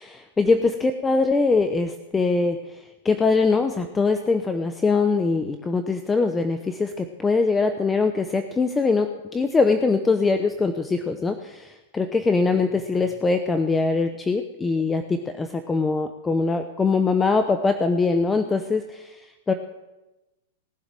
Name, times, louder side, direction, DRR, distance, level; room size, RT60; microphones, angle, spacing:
voice 1, 0.0-19.5, left 4 dB, 15° left, 8 dB, 0.7 m, -22 dB
18.5 x 7.2 x 7.5 m, 1.0 s
hypercardioid pair, 140°, 0 cm